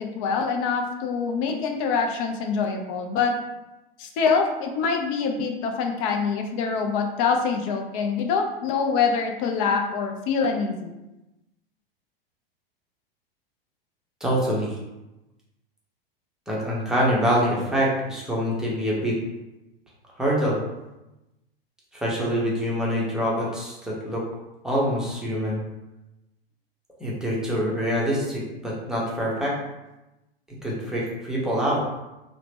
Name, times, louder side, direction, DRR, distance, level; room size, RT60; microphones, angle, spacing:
voice 1, 0.0-3.3 4.0-10.9, left 5 dB, 35° left, 4 dB, 0.4 m, -25 dB
voice 2, 14.2-14.7 16.5-19.2 20.2-20.6 21.9-24.2 24.6-25.6 27.0-29.5 30.6-31.8, equal, ahead, -6 dB, 0.7 m, -25 dB
2.8 x 2.1 x 3.3 m, 0.98 s
figure-of-eight pair, 90°, 30 cm